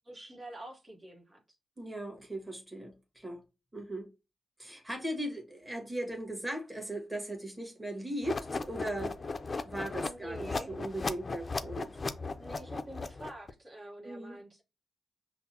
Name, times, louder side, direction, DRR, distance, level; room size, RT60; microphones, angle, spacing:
voice 1, 0.0-1.6 10.0-10.7 12.4-14.6, right 1 dB, 45° right, 1.1 m, -47 dB
voice 2, 1.8-3.4 3.7-4.1 4.6-9.2 9.6-12.0 14.0-14.4, right 1 dB, 10° right, 1.3 m, -38 dB
sound 1, 8.2-13.5, left 3 dB, 45° left, 0.4 m, -36 dB
5.7 x 2.0 x 2.7 m
cardioid pair, 55°, 0 cm